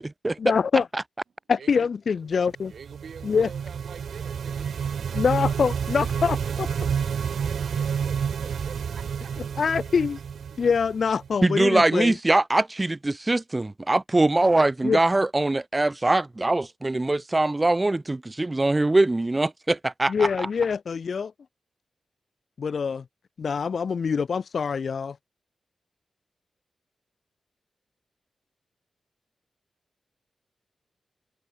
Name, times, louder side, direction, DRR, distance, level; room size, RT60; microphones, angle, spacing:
voice 1, 0.4-0.9 1.5-2.7 3.2-3.5 5.1-6.7 9.6-10.2 10.6-12.2 14.8-15.0 20.1-21.3 22.6-23.0 23.4-25.2, left 6 dB, 60° left, 0.9 m, -24 dB
voice 2, 1.6-1.9 2.3-5.0 5.5-5.6 6.4-6.9 7.3-9.6, right 6 dB, 70° right, 6.5 m, -47 dB
sound 1, 2.6-11.3, right 7 dB, 85° right, 1.3 m, -29 dB
voice 3, 11.4-20.3, right 2 dB, 20° right, 0.9 m, -22 dB
wide cardioid pair, 120°, 0 cm